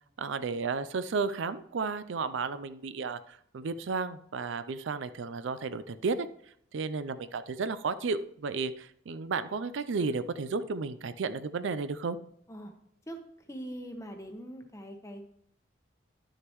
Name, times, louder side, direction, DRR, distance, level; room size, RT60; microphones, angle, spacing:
voice 1, 0.2-6.3 6.7-12.2, right 4 dB, 75° right, 13 dB, 0.4 m, -33 dB
voice 2, 13.5-15.2, equal, 15° left, 4 dB, 0.9 m, -42 dB
11.5 x 6.4 x 3.0 m, 0.68 s
head